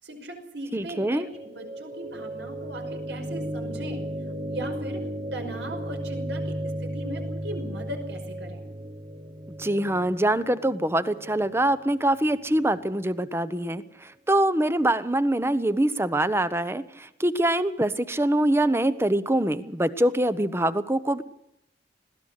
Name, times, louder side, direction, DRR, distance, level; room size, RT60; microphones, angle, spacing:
voice 1, 0.0-4.0 4.5-8.6, right 1 dB, 70° right, 4 dB, 5.7 m, -38 dB
voice 2, 0.7-1.3 9.6-21.2, right 1 dB, 15° right, 14 dB, 1.0 m, -24 dB
sound 1, 0.9-13.0, right 1 dB, 35° right, 1.1 m, -35 dB
21.5 x 16.5 x 8.2 m, 0.82 s
head